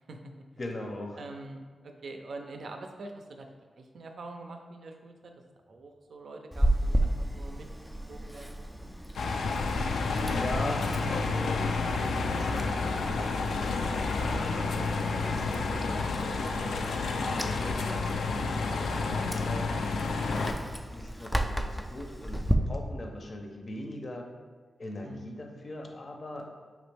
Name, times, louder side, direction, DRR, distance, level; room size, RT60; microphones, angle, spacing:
voice 1, 0.6-1.3 10.3-13.3 13.8-18.5 19.0-20.6 20.9-24.3 24.8-26.5, left 1 dB, 45° left, 2 dB, 0.6 m, -41 dB
voice 2, 1.2-3.5 3.8-5.3 5.7-7.7 8.1-8.9 17.2-17.6 25.0-25.3, right 2 dB, 70° right, 3 dB, 0.4 m, -45 dB
Chewing mastication, 6.5-22.5, right 1 dB, ahead, 0.3 m, -35 dB
sound 1, 9.1-20.5, left 3 dB, 90° left, 0.3 m, -30 dB
5.1 x 3.0 x 3.3 m, 1.5 s
wide cardioid pair, 110°, 0 cm